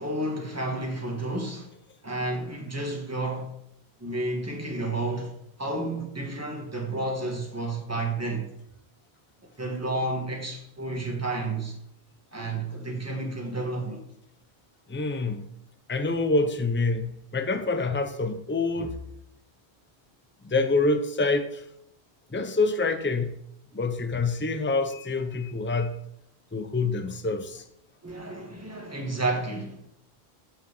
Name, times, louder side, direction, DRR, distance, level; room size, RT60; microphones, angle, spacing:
voice 1, 0.0-1.7 2.0-3.5 4.0-8.5 9.6-11.8 12.3-14.0 28.0-29.8, right 2 dB, 15° right, 2.0 m, -31 dB
voice 2, 14.9-15.5 15.9-19.0 20.4-21.6 22.3-23.4 23.7-26.0 26.5-27.6, left 3 dB, 10° left, 0.8 m, -26 dB
9.5 x 5.9 x 7.7 m
omnidirectional pair, 1.1 m